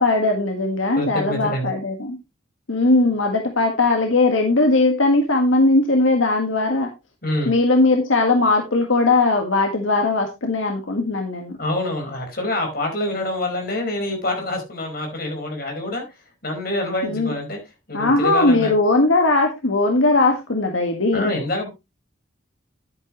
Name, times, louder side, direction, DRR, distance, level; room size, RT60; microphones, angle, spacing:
voice 1, 0.0-2.2 2.7-6.9 7.4-11.6 17.0-17.3 17.9-21.3, left 2 dB, 75° left, 1.7 m, -19 dB
voice 2, 0.9-1.7 7.2-7.5 11.6-16.0 16.4-17.6 17.9-18.7 21.1-21.7, left 1 dB, 45° left, 4.8 m, -26 dB
10.5 x 9.5 x 3.1 m
head